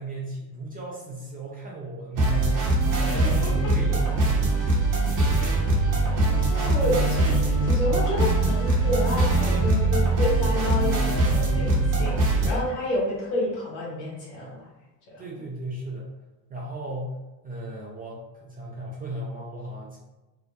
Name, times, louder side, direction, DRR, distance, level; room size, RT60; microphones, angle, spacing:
voice 1, 0.0-2.7 3.0-4.5 15.2-16.1 16.5-17.2 17.4-20.0, right 1 dB, 20° right, -5 dB, 0.5 m, -36 dB
sound 1, 2.1-12.5, right 2 dB, 40° right, 0.9 m, -22 dB
voice 2, 3.0-3.7 5.4-5.5 6.5-14.7 15.1-15.2, left 1 dB, 65° left, -5 dB, 1.3 m, -30 dB
2.7 x 2.0 x 2.3 m, 1.1 s
hypercardioid pair, 75°, 49 cm